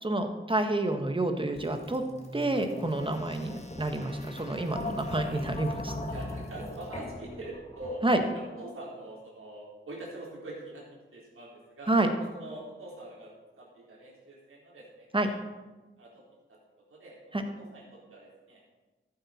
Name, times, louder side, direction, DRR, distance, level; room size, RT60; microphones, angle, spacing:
voice 1, 0.0-2.0 2.3-5.9 8.0-8.2 11.9-12.1 15.1-15.3 17.3-17.4, right 2 dB, 25° right, 6 dB, 1.4 m, -28 dB
sound 1, 1.6-8.3, left 2 dB, 30° left, 1.8 m, -40 dB
voice 2, 6.1-8.0 8.3-10.8 11.1-11.9 12.3-15.1 16.0-16.2 16.5-16.6 16.9-18.6, right 1 dB, 85° right, -4 dB, 3.8 m, -44 dB
13.5 x 8.3 x 4.3 m, 1.2 s
cardioid pair, 65°, 21 cm